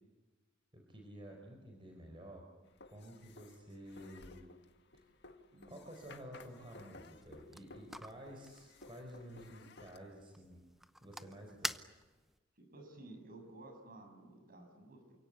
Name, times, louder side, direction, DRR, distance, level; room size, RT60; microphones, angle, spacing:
voice 1, 0.7-2.5 2.9-4.5 4.9-5.0 5.7-10.6 11.0-12.1, equal, 25° right, 1 dB, 4.5 m, -52 dB
sound 1, 2.7-10.0, left 3 dB, 60° left, 2.0 m, -57 dB
voice 2, 5.5-5.8 12.6-15.0, right 2 dB, 50° right, 5 dB, 7.3 m, -54 dB
sound 2, 7.2-12.4, equal, ahead, 0.8 m, -48 dB
29.0 x 17.5 x 10.0 m, 1.2 s
head